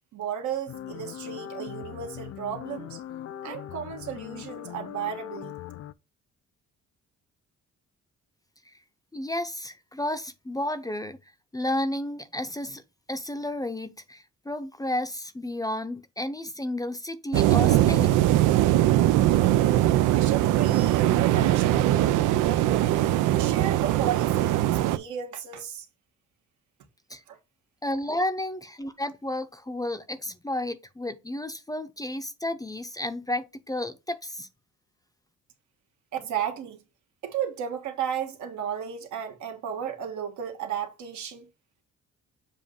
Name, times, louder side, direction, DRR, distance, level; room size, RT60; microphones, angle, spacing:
voice 1, 0.1-3.0 3.4-5.6 20.0-22.9 23.3-25.8 27.3-27.4 36.1-36.8 37.2-41.5, right 9 dB, 75° right, 1.4 m, -34 dB
sound 1, 0.7-5.9, left 11 dB, 50° left, 0.5 m, -40 dB
voice 2, 9.1-11.2 11.5-12.8 13.1-18.1 27.1-27.2 27.8-34.5, left 1 dB, 10° left, 0.6 m, -32 dB
sound 2, 17.3-25.0, right 14 dB, 90° right, 0.5 m, -21 dB
7.3 x 2.5 x 5.3 m
cardioid pair, 90°, 30 cm